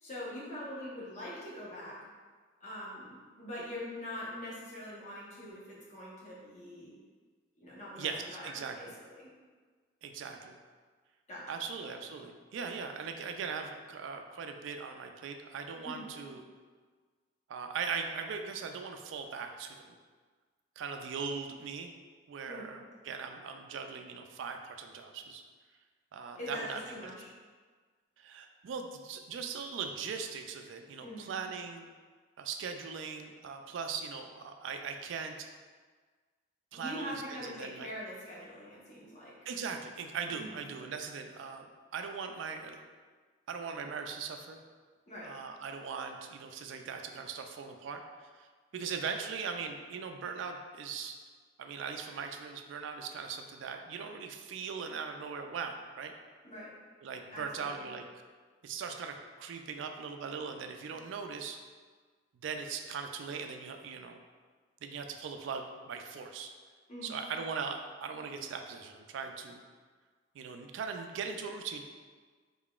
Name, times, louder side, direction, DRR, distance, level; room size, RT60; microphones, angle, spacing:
voice 1, 0.0-2.0 2.6-6.9 7.6-9.3 11.3-11.6 15.8-16.1 22.5-22.7 26.4-27.3 31.0-31.4 36.7-39.4 40.3-40.6 45.1-45.3 56.4-56.7 57.3-57.9 66.9-67.1, left 1 dB, 40° left, -7 dB, 1.0 m, -43 dB
voice 2, 8.0-9.0 10.0-10.6 11.5-16.4 17.5-19.8 20.8-21.9 22.3-25.4 26.1-26.8 28.2-31.9 32.4-35.5 36.7-37.9 39.5-41.7 41.9-42.8 43.5-44.6 45.2-48.5 48.7-51.2 51.6-56.1 57.0-58.0 58.6-61.6 62.4-64.2 64.8-66.5 67.0-69.6 70.3-71.8, right 5 dB, 85° right, 5 dB, 0.3 m, -40 dB
3.8 x 3.6 x 2.4 m, 1.5 s
head